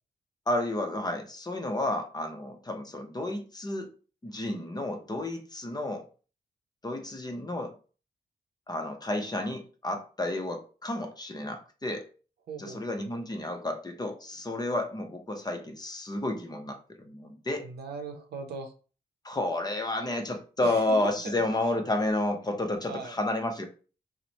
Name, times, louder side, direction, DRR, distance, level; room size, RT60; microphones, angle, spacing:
voice 1, 0.5-3.9 4.2-6.1 6.8-7.8 8.7-12.1 12.6-17.7 19.2-23.7, left 1 dB, 25° left, 5 dB, 0.7 m, -31 dB
voice 2, 12.5-13.2 17.6-18.7 20.6-21.3 22.9-23.2, right 4 dB, 90° right, 5 dB, 0.7 m, -40 dB
3.0 x 2.1 x 4.0 m, 0.38 s
cardioid pair, 65°, 16 cm